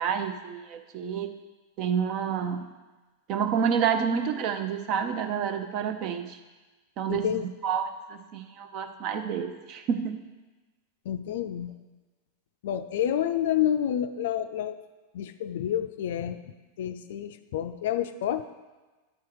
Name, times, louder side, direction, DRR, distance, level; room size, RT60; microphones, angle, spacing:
voice 1, 0.0-1.3 1.8-2.7 3.3-6.4 7.0-7.3 7.6-10.2, right 7 dB, 40° right, 7 dB, 0.7 m, -29 dB
voice 2, 7.1-7.4 11.1-11.7 12.6-14.8 15.1-18.4, left 10 dB, 55° left, 11 dB, 0.4 m, -29 dB
11.0 x 4.6 x 4.6 m, 1.2 s
figure-of-eight pair, 90°, 0 cm